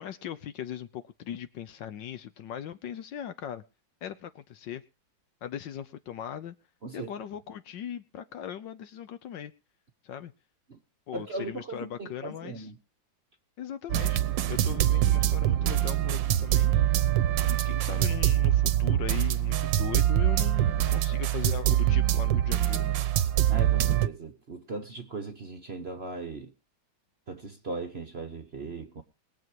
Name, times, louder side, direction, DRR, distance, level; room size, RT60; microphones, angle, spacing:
voice 1, 0.0-3.6 4.0-4.8 5.4-6.5 6.9-9.5 10.0-10.3 11.1-12.7 13.6-14.2 14.5-16.7 17.5-23.0, left 10 dB, 70° left, 1.5 m, -39 dB
voice 2, 11.1-12.7 23.5-26.5 27.3-29.0, right 3 dB, 40° right, 1.0 m, -38 dB
sound 1, 13.9-24.1, right 12 dB, 70° right, 1.5 m, -24 dB
21.5 x 7.6 x 4.7 m
omnidirectional pair, 2.2 m